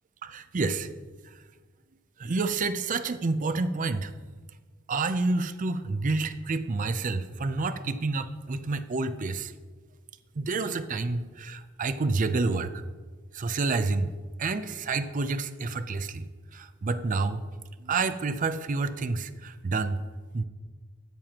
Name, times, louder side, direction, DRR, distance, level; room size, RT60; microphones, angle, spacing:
voice 1, 0.2-0.9 1.2-1.4 2.2-4.1 4.9-9.5 10.4-12.8 13.3-14.1 14.4-17.4 17.8-20.0 20.3-20.4, right 3 dB, 40° right, 11 dB, 0.5 m, -29 dB
13.5 x 9.1 x 2.9 m, 1.4 s
head